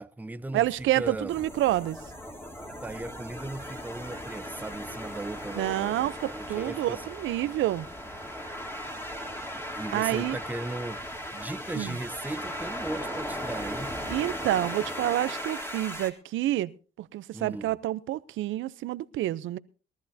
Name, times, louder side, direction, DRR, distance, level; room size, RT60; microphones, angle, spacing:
voice 1, 0.0-1.4 2.8-7.1 9.7-13.9 17.3-17.7, right 2 dB, 10° right, 0.6 m, -37 dB
sound 1, 0.5-14.7, left 3 dB, 30° left, 2.1 m, -54 dB
voice 2, 0.5-2.0 5.5-7.9 9.9-10.4 11.7-12.0 14.1-16.7 17.0-19.6, right 14 dB, 80° right, 0.7 m, -28 dB
sound 2, 1.3-16.1, equal, 10° left, 3.1 m, -37 dB
21.5 x 13.5 x 2.7 m
cardioid pair, 90°, 20 cm